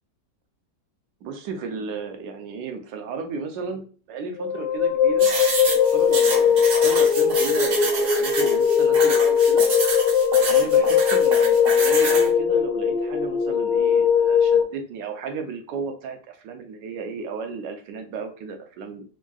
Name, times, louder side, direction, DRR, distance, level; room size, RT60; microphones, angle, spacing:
voice 1, 1.2-5.3 5.6-9.6 10.5-19.0, right 4 dB, 90° right, 5 dB, 1.3 m, -34 dB
sound 1, 4.4-14.6, left 7 dB, 80° left, 1.2 m, -19 dB
sound 2, 5.2-12.3, right 3 dB, 55° right, 1.0 m, -29 dB
3.6 x 2.4 x 2.2 m, 0.38 s
omnidirectional pair, 1.9 m